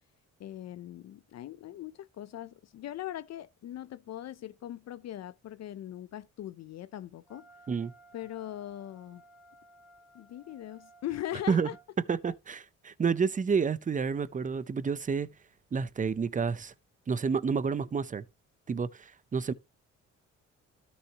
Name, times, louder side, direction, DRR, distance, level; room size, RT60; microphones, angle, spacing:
voice 1, 0.4-7.4 8.1-9.2 10.1-11.8, left 12 dB, 60° left, 0.6 m, -40 dB
Wind instrument woodwind instrument, 7.3-11.9, right 2 dB, ahead, 1.9 m, -58 dB
voice 2, 12.1-15.3 15.7-16.7 17.1-18.2 18.7-19.5, right 5 dB, 25° right, 0.6 m, -29 dB
13.0 x 6.3 x 2.9 m
cardioid pair, 90°, 30 cm